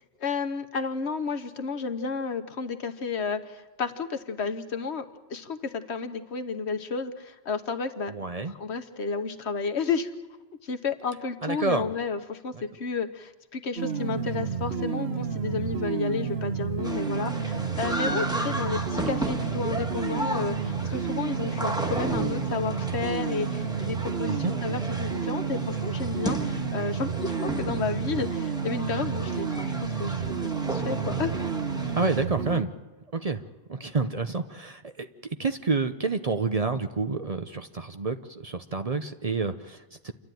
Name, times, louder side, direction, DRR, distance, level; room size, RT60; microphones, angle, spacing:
voice 1, 0.2-5.0 5.3-8.1 8.4-10.1 10.6-29.7 30.0-31.3, left 5 dB, 70° left, 9 dB, 1.4 m, -32 dB
voice 2, 8.1-8.5 11.4-11.9 12.5-12.6 24.3-24.5 31.9-32.7 33.1-33.4 33.7-40.1, right 4 dB, 40° right, 8 dB, 0.7 m, -29 dB
sound 1, 13.8-32.6, right 6 dB, 65° right, 1.3 m, -30 dB
sound 2, 16.8-32.2, right 1 dB, 5° right, 1.4 m, -35 dB
28.5 x 12.0 x 9.2 m, 1.2 s
omnidirectional pair, 1.2 m